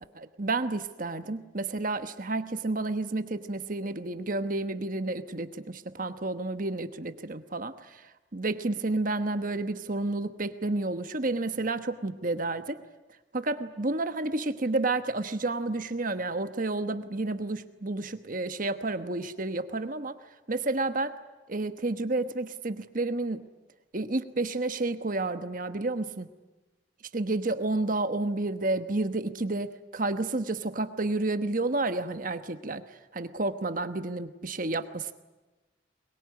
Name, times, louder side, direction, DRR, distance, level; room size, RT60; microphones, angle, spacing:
voice 1, 0.1-12.8 13.3-20.2 20.5-21.2 21.5-23.4 23.9-26.3 27.1-32.8 33.1-35.1, right 2 dB, 45° right, 10 dB, 1.1 m, -30 dB
22.5 x 22.5 x 9.6 m, 1.2 s
head